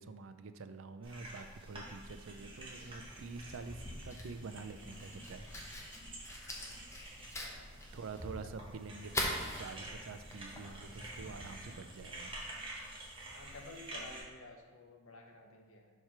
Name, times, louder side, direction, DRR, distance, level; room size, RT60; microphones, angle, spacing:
voice 1, 0.0-5.5 7.9-9.3 9.6-12.4, right 4 dB, 70° right, 9 dB, 0.4 m, -47 dB
sound 1, 1.0-14.2, right 1 dB, 25° right, 1.2 m, -49 dB
Fire, 2.8-11.6, left 1 dB, 15° left, 0.8 m, -44 dB
voice 2, 6.5-7.7 13.3-15.9, left 2 dB, 70° left, 2 dB, 0.9 m, -54 dB
4.8 x 4.4 x 5.8 m, 1.3 s
head